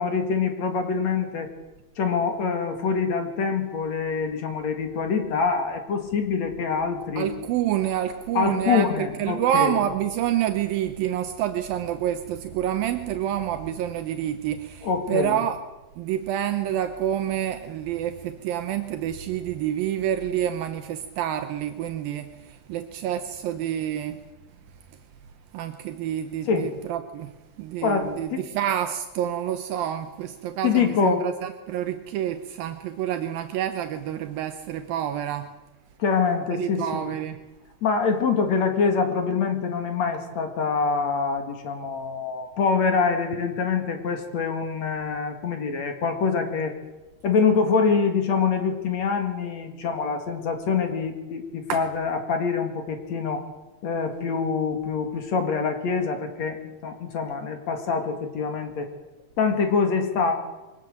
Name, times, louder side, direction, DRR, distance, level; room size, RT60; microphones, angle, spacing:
voice 1, 0.0-1.5 2.0-7.3 8.3-9.8 14.8-15.4 26.5-26.7 27.8-28.5 30.6-31.2 36.0-37.1 37.8-46.7 47.2-53.5 53.8-58.9 59.4-60.3, left 5 dB, 50° left, 6 dB, 3.1 m, -25 dB
voice 2, 7.2-15.6 16.0-24.2 25.5-35.5 36.6-37.4 51.7-51.8, right 11 dB, 80° right, 7 dB, 2.7 m, -28 dB
23.0 x 19.0 x 7.8 m, 1.1 s
omnidirectional pair, 4.2 m